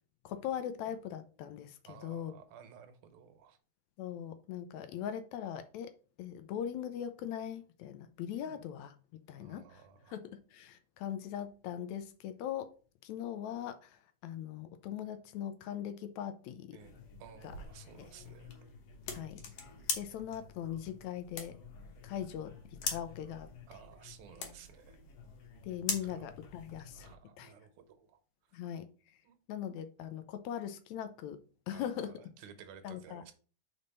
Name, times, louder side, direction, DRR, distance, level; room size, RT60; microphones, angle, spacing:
voice 1, 0.2-2.3 4.0-5.9 6.2-9.0 9.3-12.7 13.0-16.8 18.0-18.1 19.1-19.4 19.9-21.6 22.0-23.5 25.6-27.1 27.4-27.5 28.5-28.9 29.5-32.1 32.8-33.2, left 9 dB, 75° left, 1.9 m, -40 dB
voice 2, 1.9-3.6 8.4-8.6 9.4-10.2 16.7-18.5 23.7-25.0 26.0-26.3 27.0-28.2 29.2-29.4 31.7-33.3, right 8 dB, 85° right, 2.3 m, -55 dB
sound 1, 16.8-27.1, left 5 dB, 60° left, 2.1 m, -43 dB
5.3 x 4.2 x 5.3 m
omnidirectional pair, 3.4 m